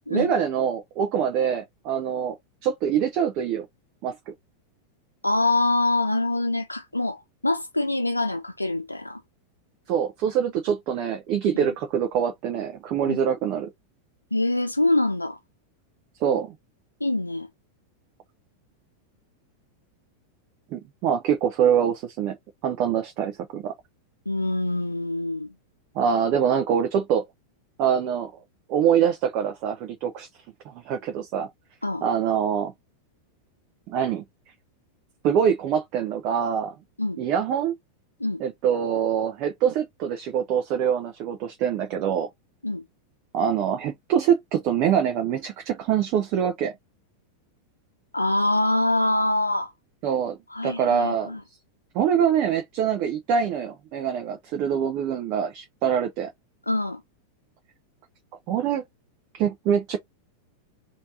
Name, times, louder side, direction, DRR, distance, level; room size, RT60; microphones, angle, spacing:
voice 1, 0.1-2.4 2.6-3.7 4.0-4.3 9.9-13.7 16.2-16.5 20.7-22.4 22.6-23.7 25.9-27.2 27.8-28.3 28.7-30.3 30.7-31.5 32.0-32.7 33.9-34.2 35.2-36.7 37.2-37.7 38.4-42.3 43.3-46.7 50.0-50.4 50.6-51.3 51.9-56.3 58.5-58.8 59.3-60.0, right 8 dB, 40° right, 0.6 m, -24 dB
voice 2, 5.2-9.2 11.6-11.7 13.1-13.2 14.3-15.4 17.0-17.5 24.3-25.5 31.8-32.0 37.0-37.2 38.2-38.4 42.6-42.8 48.1-49.7 50.5-51.4 56.7-57.0, left 2 dB, 85° left, 0.5 m, -24 dB
3.2 x 2.5 x 2.7 m
figure-of-eight pair, 90°, 0 cm